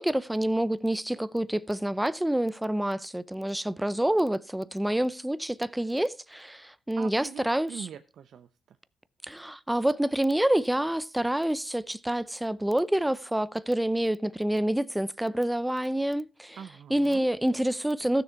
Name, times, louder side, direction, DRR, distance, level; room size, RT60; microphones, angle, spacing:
voice 1, 0.0-7.9 9.2-16.6 16.9-18.2, right 1 dB, 5° right, 0.6 m, -27 dB
voice 2, 7.0-8.8 16.6-17.3, right 8 dB, 65° right, 0.7 m, -43 dB
15.0 x 6.7 x 4.5 m
cardioid pair, 90°, 0 cm